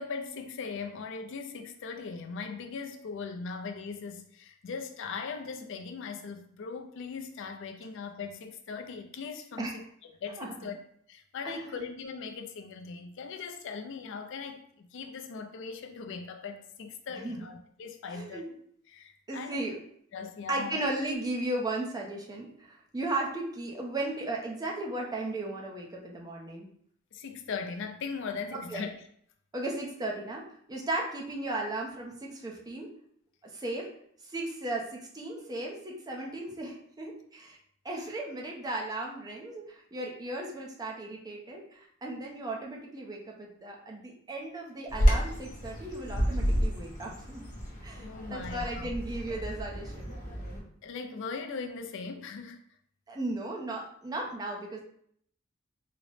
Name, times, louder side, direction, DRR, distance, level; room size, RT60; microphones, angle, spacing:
voice 1, 0.0-9.7 10.2-10.8 11.1-18.6 18.9-19.7 20.1-20.8 27.1-28.9 48.0-48.9 50.8-52.6, left 5 dB, 65° left, 5 dB, 0.4 m, -39 dB
voice 2, 10.4-10.7 11.4-11.8 17.1-17.5 18.1-18.4 19.3-19.8 20.5-26.7 28.5-28.9 29.5-30.4 30.7-32.9 33.4-33.9 34.2-37.6 37.8-47.4 47.8-50.1 53.1-54.8, right 2 dB, 20° right, -1 dB, 0.5 m, -36 dB
Bird vocalization bird call bird song, 44.9-50.6, equal, 40° left, 0.9 m, -30 dB
3.8 x 2.0 x 3.2 m, 0.65 s
head